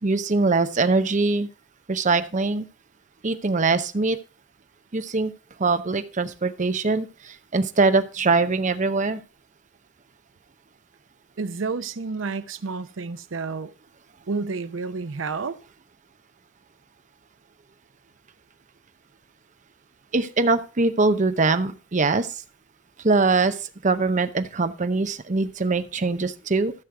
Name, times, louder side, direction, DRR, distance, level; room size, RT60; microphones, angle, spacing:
voice 1, 0.0-1.5 1.9-2.7 3.2-4.2 4.9-5.3 5.6-9.2 20.1-22.3 23.0-26.7, right 3 dB, 40° right, 0.7 m, -22 dB
voice 2, 11.4-13.7 14.3-15.6, right 4 dB, 80° right, 0.7 m, -30 dB
14.0 x 6.4 x 3.3 m
head